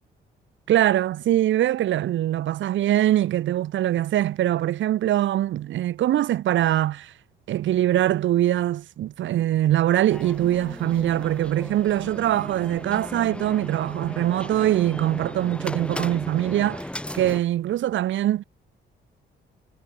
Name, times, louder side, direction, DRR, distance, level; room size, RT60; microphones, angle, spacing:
voice 1, 0.7-7.1 7.5-16.9 17.1-18.4, right 13 dB, 75° right, 1.3 m, -23 dB
sound 1, 10.1-17.4, left 1 dB, 5° left, 5.3 m, -36 dB
cardioid pair, 90°, 20 cm